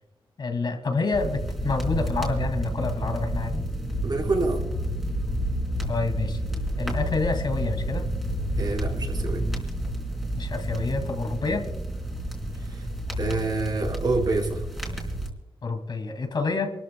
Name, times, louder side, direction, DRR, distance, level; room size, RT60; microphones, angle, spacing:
voice 1, 0.4-3.6 5.9-6.4 6.8-8.1 10.4-11.6 15.6-16.7, left 3 dB, 55° left, 5 dB, 2.3 m, -28 dB
sound 1, 1.1-15.3, equal, 5° right, 3.9 m, -30 dB
voice 2, 4.0-4.6 8.6-9.4 12.5-12.9 13.2-14.6, right 3 dB, 50° right, 0 dB, 4.4 m, -27 dB
28.0 x 13.5 x 2.2 m, 1.1 s
wide cardioid pair, 140°, 9 cm